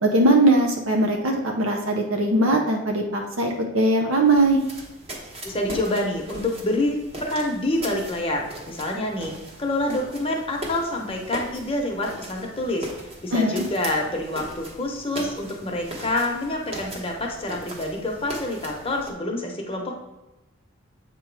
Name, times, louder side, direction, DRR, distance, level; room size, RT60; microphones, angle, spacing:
voice 1, 0.0-4.6 13.3-13.6, right 2 dB, 85° right, 2 dB, 0.7 m, -20 dB
sound 1, 4.2-19.1, right 1 dB, 30° right, 1.1 m, -39 dB
voice 2, 5.4-9.3 9.6-12.9 13.2-20.0, left 1 dB, 30° left, 0 dB, 0.9 m, -27 dB
7.5 x 3.0 x 4.7 m, 1.0 s
head